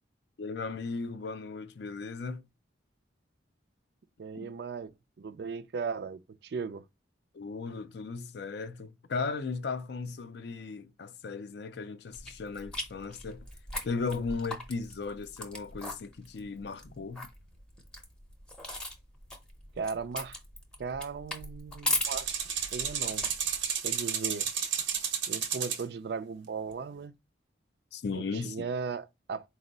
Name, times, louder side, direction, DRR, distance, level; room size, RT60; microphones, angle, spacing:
voice 1, 0.4-2.5 4.3-4.5 7.3-13.5 13.8-17.3 27.9-28.6, left 4 dB, 60° left, 0.4 m, -36 dB
voice 2, 4.2-4.9 5.2-6.8 19.8-20.4 20.8-22.4 22.7-23.3 23.8-24.5 25.3-27.2 28.3-29.5, right 5 dB, 55° right, 0.3 m, -37 dB
sound 1, 12.1-23.7, left 1 dB, 5° left, 0.6 m, -39 dB
sound 2, 22.0-25.8, right 7 dB, 80° right, 0.8 m, -32 dB
4.3 x 2.0 x 3.8 m
head